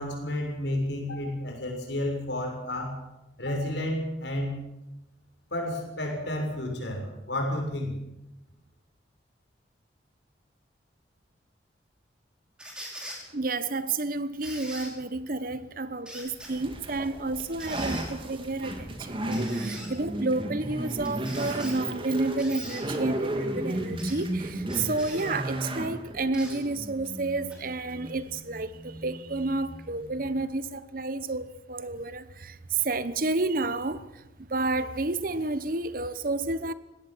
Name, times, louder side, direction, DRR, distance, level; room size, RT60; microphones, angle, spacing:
voice 1, 0.0-3.0 3.4-4.6 5.5-7.9, left 1 dB, 70° left, 6.9 m, -31 dB
sound 1, 12.6-13.2 14.4-14.9 16.0-16.5 17.6-18.1 19.3-19.9 21.0-21.8 22.4-22.8 24.0-24.2 24.7-25.3 26.3-26.6 27.5-27.6, equal, 5° right, 4.9 m, -42 dB
voice 2, 13.3-34.2 34.5-36.7, right 3 dB, 50° right, 1.0 m, -30 dB
sound 2, 16.4-30.4, right 1 dB, 30° right, 2.7 m, -34 dB
20.5 x 17.0 x 7.9 m
head